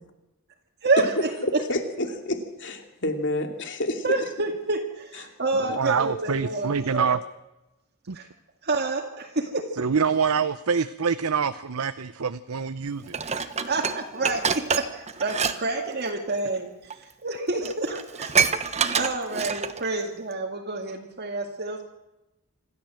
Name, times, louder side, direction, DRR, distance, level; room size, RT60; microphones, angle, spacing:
voice 1, 0.8-1.6 4.0-7.2 8.1-8.3 8.6-9.8 13.7-14.9 15.2-18.3 18.6-21.8, right 3 dB, 45° right, 2 dB, 2.2 m, -28 dB
voice 2, 1.4-4.0, left 1 dB, 55° left, 5 dB, 2.7 m, -29 dB
voice 3, 5.5-7.2 8.1-8.2 9.8-13.2, right 6 dB, 75° right, 12 dB, 0.7 m, -25 dB
Dishes pots and pans, 13.1-15.6 15.9-16.1 16.9-17.0 17.3-17.4 17.6-19.9 20.3-20.4, right 6 dB, 30° right, 1.1 m, -26 dB
26.5 x 13.5 x 7.7 m, 0.97 s
head